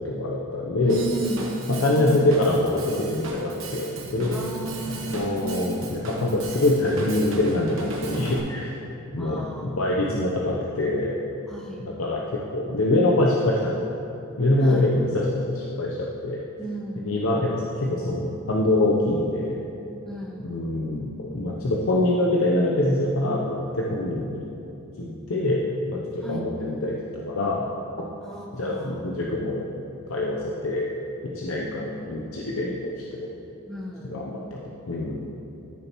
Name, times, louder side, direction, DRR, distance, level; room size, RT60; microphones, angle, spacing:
voice 1, 0.0-1.0 1.8-4.4 5.1-8.7 9.1-11.2 11.8-14.0 14.3-14.9 15.1-16.4 17.0-19.6 20.4-24.4 25.0-27.7 28.5-29.7 30.1-30.9 31.2-33.3 34.1-34.6 34.9-35.3, left 1 dB, 80° left, -3 dB, 0.7 m, -24 dB
voice 2, 0.8-2.2 4.3-5.4 9.1-10.1 11.5-11.9 14.6-14.9 16.6-17.2 20.1-20.5 26.2-26.5 28.2-29.0 31.8-32.3 33.7-34.2, right 1 dB, ahead, -4 dB, 1.0 m, -34 dB
Drum kit / Drum, 0.9-8.4, right 2 dB, 70° right, 1.1 m, -36 dB
13.0 x 6.7 x 3.0 m, 2.8 s
head